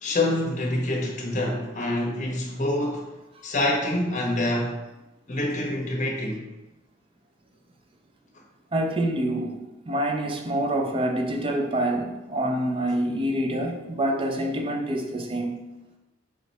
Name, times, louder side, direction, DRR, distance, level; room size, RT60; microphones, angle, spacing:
voice 1, 0.0-3.1 3.4-4.8 5.3-6.4, left 1 dB, 40° left, 0.8 m, -26 dB
voice 2, 8.7-9.6 9.9-15.6, right 1 dB, 25° right, 0.4 m, -26 dB
4.9 x 2.2 x 4.0 m
head